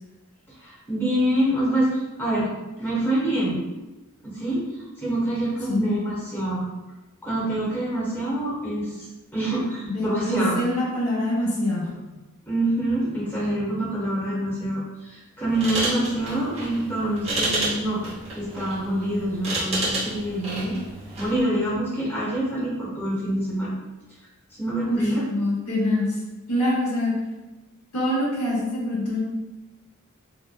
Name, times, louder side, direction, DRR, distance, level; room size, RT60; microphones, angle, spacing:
voice 1, 0.6-2.5 2.8-3.6 4.2-4.7 5.0-6.7 7.2-9.1 9.3-10.6 12.5-20.7 21.2-23.7 24.5-25.2, right 1 dB, 10° left, -8 dB, 0.9 m, -26 dB
voice 2, 9.9-11.9 24.9-26.2 26.5-27.1 27.9-29.2, left 1 dB, 70° left, -5 dB, 0.8 m, -25 dB
sound 1, 15.5-21.4, right 2 dB, 30° right, 0.7 m, -30 dB
2.8 x 2.1 x 2.2 m, 1.1 s
head